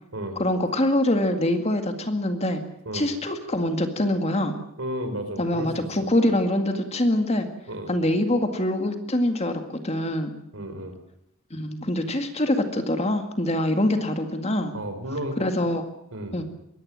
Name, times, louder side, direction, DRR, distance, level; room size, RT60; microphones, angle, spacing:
voice 1, 0.4-2.6 2.9-4.5 5.4-7.5 7.9-10.3 11.5-14.7 15.4-15.8 16.3-16.4, left 1 dB, 30° left, 7 dB, 2.0 m, -24 dB
voice 2, 4.8-5.7 6.0-6.1 7.7-7.9 10.5-11.0 14.7-15.4 16.1-16.4, right 1 dB, 65° right, 7 dB, 4.7 m, -32 dB
22.5 x 18.0 x 7.5 m, 0.78 s
head